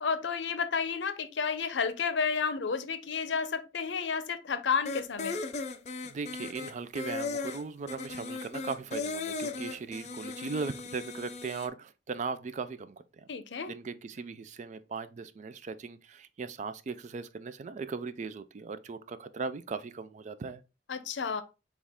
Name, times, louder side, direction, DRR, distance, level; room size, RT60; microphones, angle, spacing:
voice 1, 0.0-5.4 13.3-13.7 20.9-21.4, left 5 dB, 85° left, 0.6 m, -31 dB
sound 1, 4.9-11.7, left 3 dB, 40° left, 0.4 m, -37 dB
voice 2, 6.0-13.3 13.7-20.6, right 4 dB, 40° right, 0.3 m, -38 dB
6.3 x 2.4 x 3.5 m
head